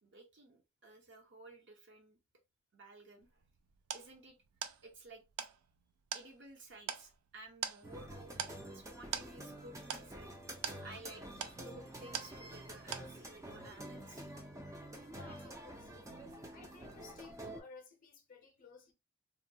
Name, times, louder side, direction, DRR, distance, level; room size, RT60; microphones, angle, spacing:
voice 1, 0.0-2.2 2.7-3.4 3.9-4.3 4.8-5.5 6.1-8.3 8.7-10.5 10.8-14.4, right 2 dB, 50° right, 0.7 m, -55 dB
sound 1, 3.2-12.7 12.9-13.5, right 8 dB, 80° right, 0.4 m, -44 dB
sound 2, 7.8-17.6, right 1 dB, 15° right, 0.4 m, -48 dB
voice 2, 15.1-16.1 16.5-18.9, left 4 dB, 40° left, 0.6 m, -56 dB
2.9 x 2.2 x 2.6 m
head